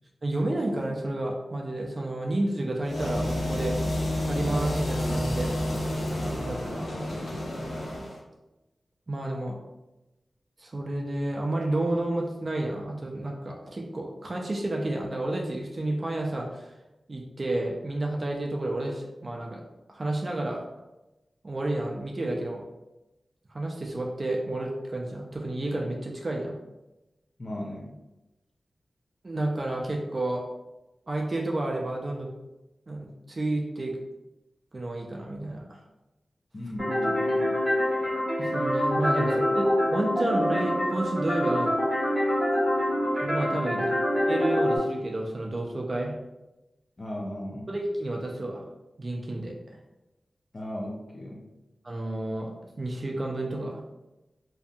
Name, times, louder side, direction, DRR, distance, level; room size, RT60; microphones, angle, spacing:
voice 1, 0.2-4.0 4.2-5.5 6.2-7.1 9.1-9.6 10.6-16.7 17.1-19.6 19.9-20.6 21.4-22.6 23.5-26.6 29.2-30.4 31.1-32.3 32.9-34.0 34.7-35.8 38.4-41.8 43.2-43.8 44.3-46.2 47.7-48.6 49.0-49.8 51.8-53.8, right 1 dB, 35° right, 0 dB, 0.3 m, -31 dB
sound 1, 2.8-8.2, left 1 dB, 90° left, 0.5 m, -29 dB
voice 2, 27.4-27.9 36.5-37.7 39.2-39.6 43.7-43.9 47.0-47.7 50.5-51.4, left 1 dB, 40° left, -1 dB, 0.4 m, -37 dB
sound 2, 36.8-44.8, left 1 dB, 5° right, 1.3 m, -26 dB
2.6 x 2.5 x 2.2 m, 0.99 s
wide cardioid pair, 115°, 0 cm